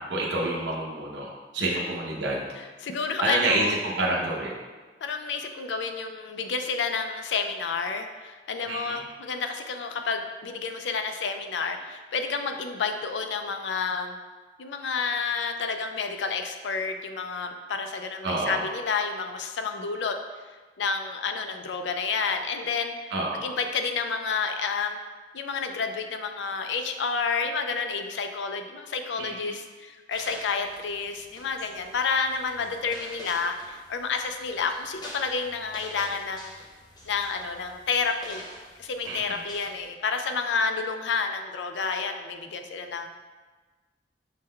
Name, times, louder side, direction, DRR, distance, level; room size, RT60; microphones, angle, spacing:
voice 1, 0.0-2.4 3.2-4.6 8.7-9.0 18.2-18.6 23.1-23.5 29.2-29.4 39.1-39.4, right 2 dB, 80° right, -3 dB, 0.6 m, -28 dB
voice 2, 2.8-3.7 5.0-14.2 14.6-20.2 20.8-22.9 23.4-25.0 25.3-36.5 37.0-38.4 38.8-43.1, left 5 dB, 85° left, 6 dB, 0.4 m, -30 dB
sound 1, 30.1-39.8, equal, 25° left, 0.7 m, -46 dB
5.6 x 2.1 x 3.7 m, 1.3 s
head